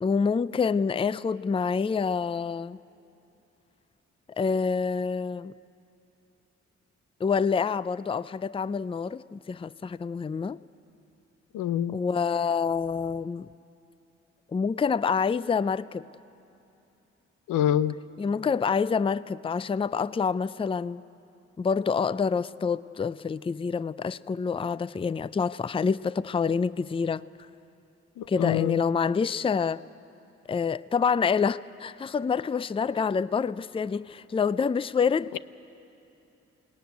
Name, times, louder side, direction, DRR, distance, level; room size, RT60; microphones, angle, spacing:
voice 1, 0.0-2.8 4.4-5.5 7.2-10.6 11.9-13.5 14.5-16.0 18.2-21.0 21.6-27.2 28.3-29.8 30.5-35.3, left 5 dB, 20° left, 0.4 m, -27 dB
voice 2, 11.5-12.0 17.5-17.9 28.2-28.8, left 11 dB, 80° left, 0.6 m, -26 dB
21.5 x 18.0 x 9.3 m
supercardioid pair, 45°, 31 cm